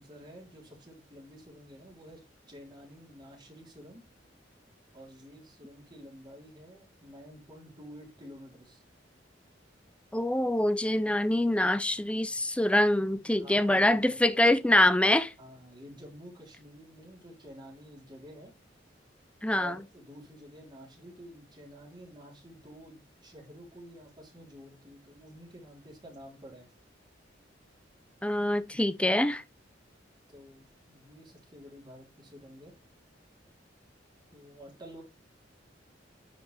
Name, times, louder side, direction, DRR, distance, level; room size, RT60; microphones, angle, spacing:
voice 1, 0.0-4.0 4.9-8.8 13.2-14.2 15.4-18.5 19.6-26.7 30.3-32.7 34.3-35.0, equal, 25° right, 3.7 m, -50 dB
voice 2, 10.1-15.3 19.4-19.8 28.2-29.4, left 1 dB, 5° left, 0.5 m, -25 dB
9.9 x 5.1 x 3.4 m
head